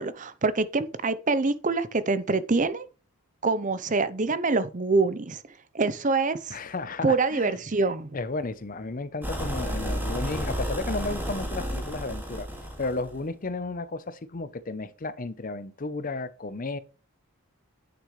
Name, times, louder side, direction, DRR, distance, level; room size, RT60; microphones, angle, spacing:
voice 1, 0.0-2.9 3.4-5.4 5.7-6.6 7.0-8.1, right 3 dB, 35° right, 0.6 m, -25 dB
voice 2, 6.5-7.6 8.1-12.5 12.8-16.8, left 3 dB, 40° left, 0.6 m, -33 dB
sound 1, 9.2-13.2, equal, 10° right, 2.0 m, -32 dB
9.8 x 6.4 x 3.1 m
head